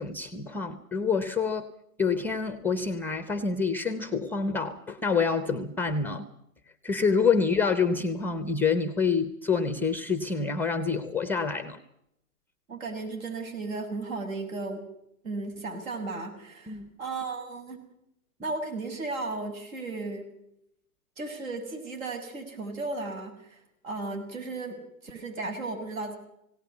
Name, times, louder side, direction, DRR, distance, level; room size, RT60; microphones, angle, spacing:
voice 1, 0.0-1.7 2.0-6.3 6.8-11.8 16.7-16.9, left 5 dB, 5° left, 11 dB, 0.7 m, -27 dB
voice 2, 12.7-14.8 15.2-17.8 18.4-20.3 21.2-26.2, right 3 dB, 65° right, 5 dB, 6.9 m, -35 dB
19.0 x 18.0 x 8.1 m, 0.79 s
hypercardioid pair, 125°, 44 cm